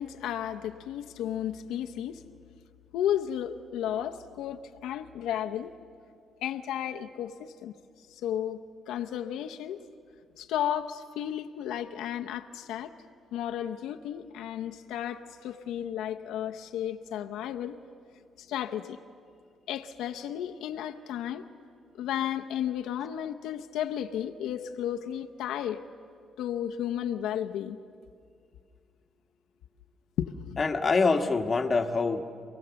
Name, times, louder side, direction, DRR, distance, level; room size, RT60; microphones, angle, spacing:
voice 1, 0.0-2.2 2.9-5.7 6.4-7.7 8.1-8.6 8.9-9.8 10.4-12.9 13.3-17.8 18.4-19.0 19.7-21.5 21.9-25.8 26.4-27.8 30.2-30.6, left 10 dB, 90° left, 5 dB, 0.7 m, -33 dB
voice 2, 30.6-32.2, left 4 dB, 30° left, 4 dB, 1.4 m, -25 dB
27.5 x 17.5 x 7.0 m, 2.3 s
cardioid pair, 105°, 0 cm